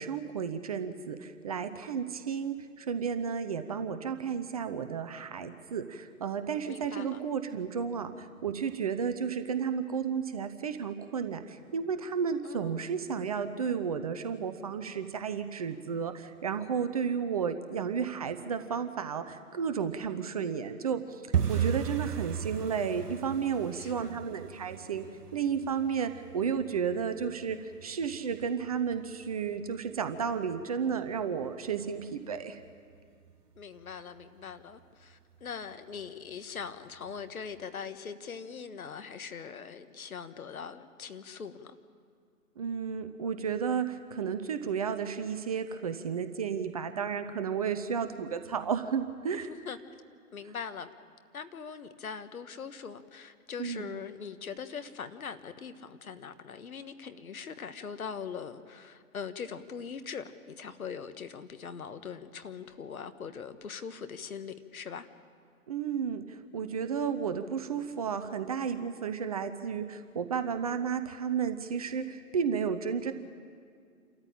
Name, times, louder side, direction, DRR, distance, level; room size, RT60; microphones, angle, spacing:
voice 1, 0.0-21.2 21.5-25.1 25.3-32.6 42.6-49.5 53.6-53.9 65.7-73.1, right 6 dB, 25° right, 9 dB, 0.6 m, -32 dB
voice 2, 6.7-7.2 12.4-13.0 21.4-21.7 23.7-24.2 33.6-41.8 49.3-49.8 50.3-50.9 51.3-65.1, left 6 dB, 65° left, 10 dB, 1.5 m, -42 dB
sound 1, 21.3-32.0 32.3-33.0 33.3-33.6 33.8-34.2 34.5-34.6 35.1-35.6 36.0-36.1 36.6-36.7, right 8 dB, 85° right, 1.0 m, -37 dB
28.0 x 13.5 x 8.9 m, 2.2 s
figure-of-eight pair, 135°, 45 cm